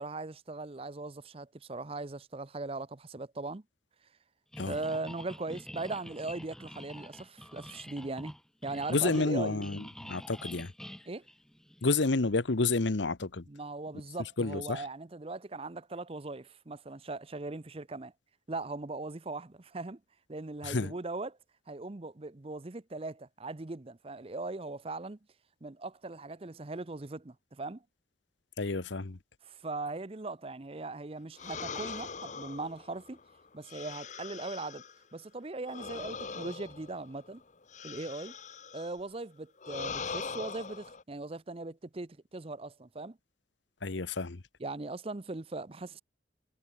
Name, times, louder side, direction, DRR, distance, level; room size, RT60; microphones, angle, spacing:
voice 1, 0.0-3.6 4.6-8.3 8.6-9.7 11.1-11.2 13.5-18.1 18.5-20.0 20.3-21.4 21.7-25.2 25.6-27.8 29.4-33.2 33.5-34.8 35.1-37.4 37.8-38.3 38.7-43.2 44.6-46.0, right 2 dB, 30° right, 0.7 m, -39 dB
sound 1, 4.5-12.0, equal, 5° left, 1.1 m, -47 dB
voice 2, 8.9-10.7 11.8-13.4 14.4-14.8 20.6-20.9 28.6-29.2 43.8-44.4, left 3 dB, 85° left, 1.1 m, -30 dB
sound 2, 31.4-35.0 35.6-39.0 39.6-41.0, left 5 dB, 40° left, 0.8 m, -42 dB
head